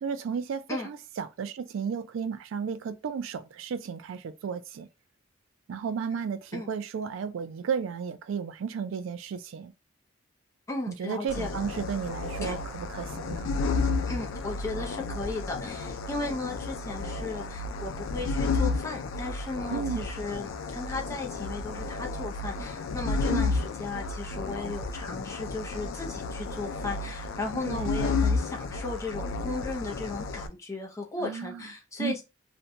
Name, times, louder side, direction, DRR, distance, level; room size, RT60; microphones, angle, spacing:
voice 1, 0.0-4.9 5.7-9.7 10.9-13.5 19.7-20.0 23.3-23.5 27.7-28.0 31.2-31.6 32.0-32.2, right 6 dB, 80° right, 0.3 m, -33 dB
voice 2, 10.7-11.6 12.4-12.6 14.1-32.2, left 3 dB, 15° left, 0.5 m, -36 dB
sound 1, 11.3-30.5, left 3 dB, 80° left, 0.3 m, -32 dB
2.6 x 2.1 x 2.6 m
head